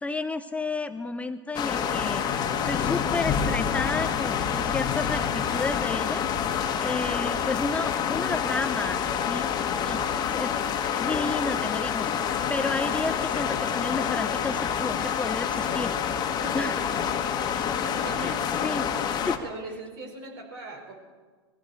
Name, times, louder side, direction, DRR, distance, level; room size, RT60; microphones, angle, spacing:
voice 1, 0.0-2.2 2.6-6.2 6.8-9.0 9.3-9.5 9.8-10.0 10.3-10.5 11.0-15.9 16.5-16.8 18.2-18.4 18.6-18.9 19.3-19.4, left 3 dB, 10° left, 10 dB, 0.5 m, -31 dB
sound 1, 1.5-19.4, left 7 dB, 30° left, 1.5 m, -27 dB
voice 2, 16.4-16.9 17.8-18.4 19.2-20.9, right 2 dB, 60° right, 3 dB, 4.9 m, -40 dB
21.5 x 15.0 x 4.4 m, 1.4 s
hypercardioid pair, 115°, 14 cm